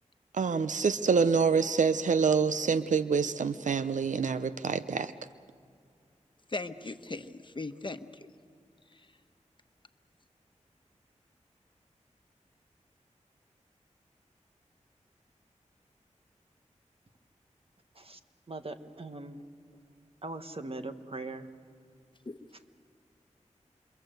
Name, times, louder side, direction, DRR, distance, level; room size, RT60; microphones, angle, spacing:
voice 1, 0.3-5.1, right 5 dB, 80° right, 13 dB, 0.6 m, -26 dB
voice 2, 6.5-8.3 22.2-22.4, left 2 dB, 40° left, 9 dB, 1.1 m, -38 dB
voice 3, 18.5-19.5 20.2-21.5, right 2 dB, 50° right, 7 dB, 1.6 m, -40 dB
27.0 x 23.5 x 7.9 m, 2.3 s
cardioid pair, 45°, 13 cm